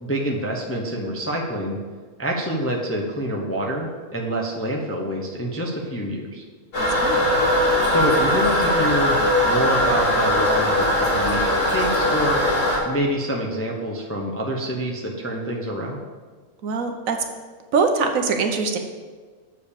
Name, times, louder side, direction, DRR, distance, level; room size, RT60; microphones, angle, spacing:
voice 1, 0.0-1.8 2.2-6.4 7.9-9.2 9.4-12.4 12.8-16.0, equal, 15° left, -1 dB, 0.6 m, -26 dB
Toilet flush, 6.7-12.8, left 1 dB, 80° left, 2.9 m, -20 dB
voice 2, 6.8-7.3 16.6-17.2 17.7-18.8, right 4 dB, 65° right, 5 dB, 1.1 m, -23 dB
7.1 x 4.9 x 6.9 m, 1.5 s
omnidirectional pair, 1.6 m